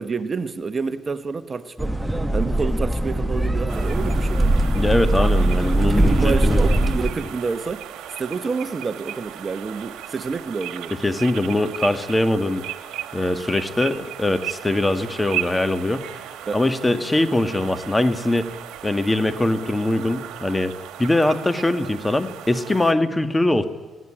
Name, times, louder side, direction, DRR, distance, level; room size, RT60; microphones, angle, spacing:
voice 1, 0.0-2.0 2.3-4.5 5.9-7.8 8.1-10.9 16.5-16.6, right 4 dB, 35° right, 11 dB, 1.1 m, -28 dB
sound 1, 1.8-7.1, right 1 dB, 10° right, 1.3 m, -20 dB
sound 2, 3.7-22.9, right 12 dB, 85° right, 1.5 m, -36 dB
voice 2, 4.7-6.6 10.9-12.6 13.1-16.0 16.5-18.5 18.8-23.7, left 1 dB, 15° left, 10 dB, 1.5 m, -22 dB
20.0 x 17.0 x 10.0 m, 1.3 s
cardioid pair, 90°, 0 cm